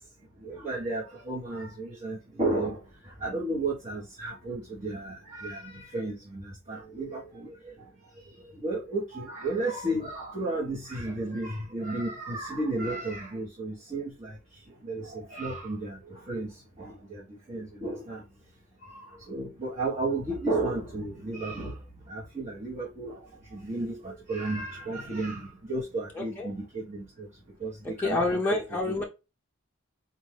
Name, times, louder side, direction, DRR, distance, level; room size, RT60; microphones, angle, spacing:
voice 1, 0.4-2.8 3.2-7.5 8.6-14.3 14.8-16.0 16.3-16.5 16.8-17.2 17.5-18.2 19.3-21.7 22.1-23.1 23.5-27.3 27.6-27.7 28.0-29.0, right 2 dB, 35° right, 1.3 m, -33 dB
voice 2, 26.1-26.5 28.0-29.0, left 2 dB, 10° left, 0.6 m, -28 dB
4.3 x 2.6 x 3.3 m
head